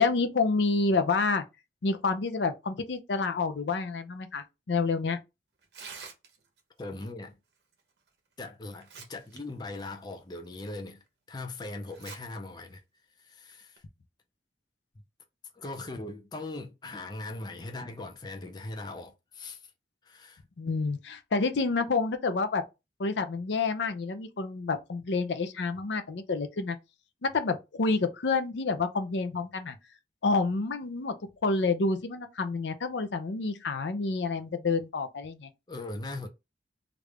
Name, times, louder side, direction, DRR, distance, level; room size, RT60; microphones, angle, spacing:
voice 1, 0.0-1.4 1.8-5.2 20.6-22.6 23.0-26.8 27.2-29.8 30.2-31.1 31.4-35.5, left 4 dB, 80° left, 0.5 m, -28 dB
Tearing, 5.6-6.6 8.1-8.2 8.7-9.4 9.7-9.9 10.5-10.6 11.9-12.2 12.6-12.7 13.5-13.8, right 5 dB, 70° right, 0.9 m, -46 dB
voice 2, 6.8-7.4 8.4-12.8 13.2-13.8 15.5-19.6 20.0-20.4 35.7-36.3, left 2 dB, 25° left, 0.5 m, -40 dB
3.3 x 2.5 x 3.2 m
head